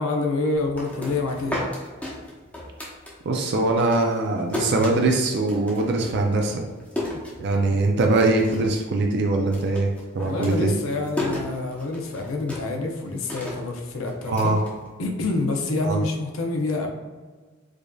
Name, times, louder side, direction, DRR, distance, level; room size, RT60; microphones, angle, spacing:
voice 1, 0.0-1.6 7.1-7.2 10.2-14.5 15.0-16.9, left 2 dB, 85° left, 3 dB, 0.6 m, -27 dB
sound 1, 0.5-3.5 3.8-7.9 8.2-8.8 9.1-15.4, left 1 dB, 5° left, 0.7 m, -34 dB
voice 2, 3.2-6.7 7.4-10.7 14.3-14.6 15.8-16.0, right 2 dB, 55° right, 2 dB, 0.4 m, -22 dB
4.9 x 2.5 x 2.3 m, 1.4 s
head